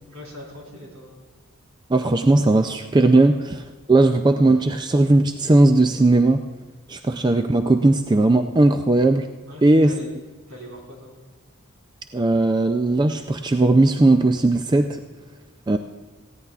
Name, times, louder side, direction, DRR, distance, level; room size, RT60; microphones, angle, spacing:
voice 1, 0.1-1.1 9.5-10.1 10.5-11.2, equal, 75° right, -1 dB, 4.0 m, -41 dB
voice 2, 1.9-3.6 3.9-6.4 6.9-9.3 9.6-10.0 12.1-15.0 15.7-15.8, right 2 dB, 20° right, 7 dB, 0.3 m, -17 dB
19.0 x 15.0 x 2.4 m, 1.3 s
head